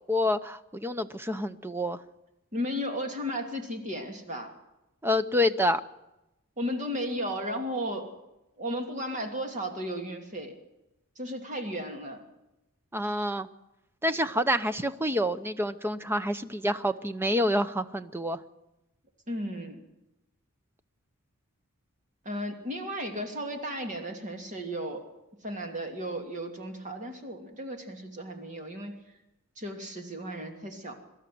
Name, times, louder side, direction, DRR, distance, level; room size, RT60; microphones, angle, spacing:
voice 1, 0.1-2.0 5.0-5.8 12.9-13.5 14.0-18.4, left 1 dB, 10° right, 11 dB, 0.8 m, -27 dB
voice 2, 2.5-4.5 6.6-8.1 8.6-10.5 11.2-12.2 19.3-19.8 22.2-25.0 25.4-28.9 29.6-30.9, equal, 35° right, 4 dB, 2.8 m, -34 dB
23.5 x 13.0 x 9.4 m, 0.94 s
head